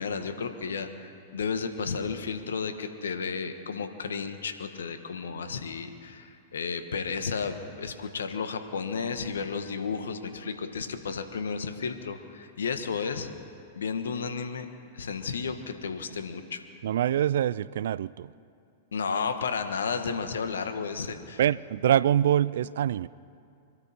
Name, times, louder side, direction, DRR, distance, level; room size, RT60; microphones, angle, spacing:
voice 1, 0.0-13.3 13.7-14.7 14.9-16.6 18.9-21.4, left 5 dB, 80° left, 8 dB, 1.4 m, -33 dB
voice 2, 16.8-18.3 21.4-23.1, right 11 dB, 70° right, 20 dB, 0.4 m, -25 dB
25.0 x 12.5 x 4.4 m, 2.4 s
hypercardioid pair, 105°, 0 cm